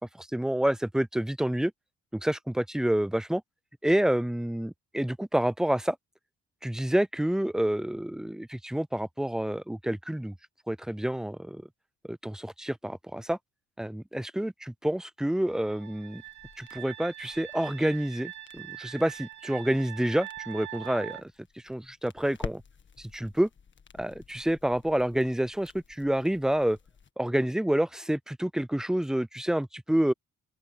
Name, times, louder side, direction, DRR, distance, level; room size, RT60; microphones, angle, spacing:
voice 1, 0.1-1.7 2.2-3.4 3.8-6.0 6.6-10.3 10.7-11.6 12.1-13.4 13.8-16.2 16.6-21.3 21.6-22.6 23.0-23.5 24.0-26.8 27.2-30.1, right 1 dB, ahead, 0.3 m, -28 dB
sound 1, 15.3-21.2, right 14 dB, 65° right, 3.1 m, -43 dB
sound 2, 16.1-27.1, left 6 dB, 40° left, 1.7 m, -49 dB
open air
cardioid pair, 90°, 30 cm